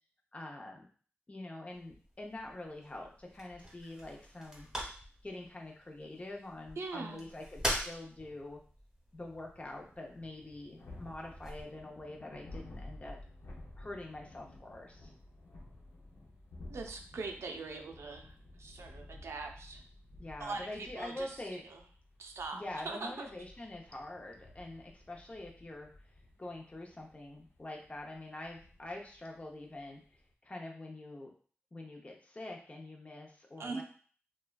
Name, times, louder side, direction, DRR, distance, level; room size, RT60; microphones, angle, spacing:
voice 1, 0.3-0.9 1.3-4.7 5.2-8.6 9.1-13.2 13.8-15.1 20.2-21.6 22.5-25.9 26.4-31.3 31.7-33.8, left 2 dB, 30° left, 0 dB, 0.6 m, -45 dB
sound 1, 1.7-11.6, equal, 10° right, 1.1 m, -44 dB
voice 2, 6.8-7.3 16.7-19.8 20.4-21.8 22.2-23.2 33.6-33.8, right 3 dB, 90° right, 4 dB, 0.4 m, -42 dB
sound 2, 10.8-30.3, left 1 dB, 70° left, 0.6 m, -53 dB
2.9 x 2.2 x 2.3 m, 0.44 s
wide cardioid pair, 70°, 4 cm